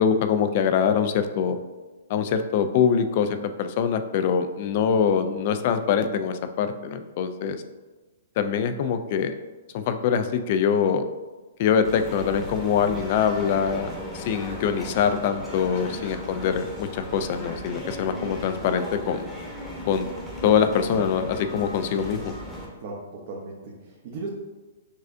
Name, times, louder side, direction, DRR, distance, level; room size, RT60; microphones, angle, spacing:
voice 1, 0.0-1.6 2.1-7.6 8.4-9.3 9.7-11.0 11.6-19.3 19.8-20.1 20.4-22.3, left 7 dB, 45° left, 9 dB, 0.3 m, -24 dB
sound 1, 11.8-22.7, left 1 dB, 5° left, 0.9 m, -37 dB
voice 2, 15.6-16.2 22.8-24.3, right 3 dB, 50° right, -3 dB, 0.7 m, -38 dB
6.4 x 2.4 x 2.5 m, 1.2 s
hypercardioid pair, 140°, 0 cm